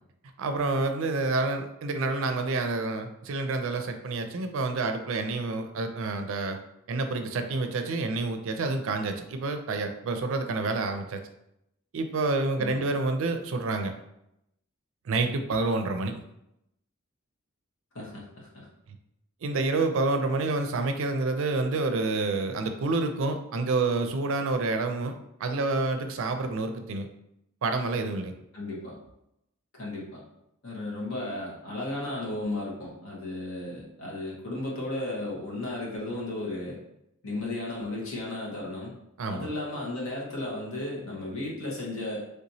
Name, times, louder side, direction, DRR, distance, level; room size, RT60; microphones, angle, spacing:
voice 1, 0.4-6.6 6.9-11.2 11.9-13.9 15.1-16.1 19.4-27.1 27.6-28.3 39.2-39.5, right 3 dB, 70° right, 6 dB, 0.4 m, -28 dB
voice 2, 17.9-18.7 28.5-28.9 29.8-30.2 30.6-36.8 37.2-38.9 39.3-42.2, left 2 dB, 70° left, -4 dB, 1.2 m, -34 dB
3.3 x 2.9 x 2.7 m, 0.82 s
head